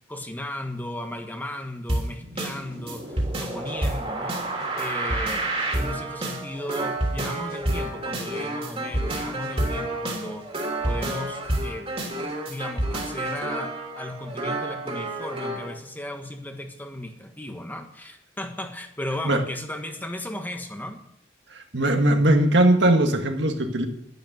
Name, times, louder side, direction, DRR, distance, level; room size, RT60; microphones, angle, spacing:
voice 1, 0.1-4.5 4.7-10.5 10.8-12.1 12.5-21.0, left 1 dB, 10° left, 5 dB, 1.5 m, -36 dB
sound 1, 1.9-15.7, right 1 dB, 30° right, 3.2 m, -29 dB
voice 2, 21.5-23.9, right 1 dB, 65° right, 4 dB, 2.0 m, -20 dB
12.0 x 10.5 x 8.1 m, 0.73 s
head